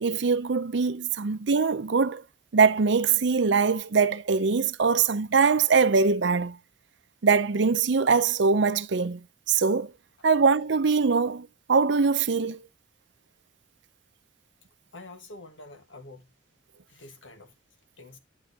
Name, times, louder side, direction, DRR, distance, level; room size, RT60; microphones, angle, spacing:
voice 1, 0.0-2.2 2.5-6.6 7.2-9.2 9.5-9.9 10.2-12.6, right 5 dB, 70° right, 0.6 m, -22 dB
voice 2, 14.9-16.2 16.9-17.5 18.0-18.2, left 2 dB, 85° left, 1.6 m, -46 dB
11.0 x 6.3 x 2.8 m
head